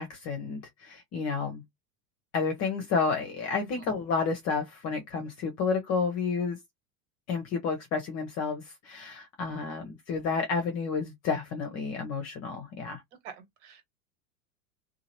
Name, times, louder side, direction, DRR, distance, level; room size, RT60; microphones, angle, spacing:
voice 1, 0.0-1.6 2.3-6.6 7.3-13.0, left 5 dB, 35° left, 0.8 m, -31 dB
voice 2, 13.2-13.8, right 6 dB, 50° right, 1.6 m, -47 dB
2.8 x 2.5 x 2.8 m
figure-of-eight pair, 90°, 46 cm